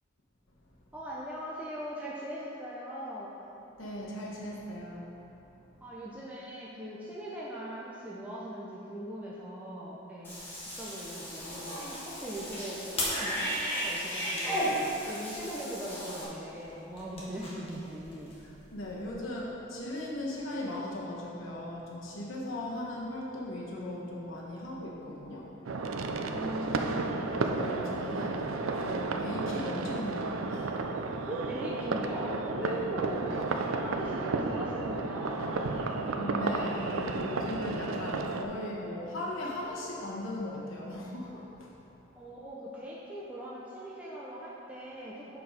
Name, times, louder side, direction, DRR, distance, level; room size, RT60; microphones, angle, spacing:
voice 1, 0.9-3.4 5.8-10.4 10.8-14.7 15.0-18.4 26.3-27.3 31.3-33.3 33.7-36.2 36.5-37.0 42.1-45.4, right 1 dB, 5° right, -7 dB, 0.7 m, -40 dB
voice 2, 3.8-5.1 18.4-25.5 26.0-26.9 27.3-30.9 32.6-32.8 33.3-33.8 36.1-41.7, left 1 dB, 80° left, -4 dB, 1.1 m, -38 dB
Cat / Bathtub (filling or washing), 10.2-16.2, equal, 10° left, 1.4 m, -35 dB
sound 1, 10.3-19.1, left 1 dB, 30° left, 1.3 m, -43 dB
sound 2, 25.6-38.4, right 3 dB, 85° right, 0.4 m, -33 dB
7.8 x 4.6 x 5.0 m, 2.9 s
head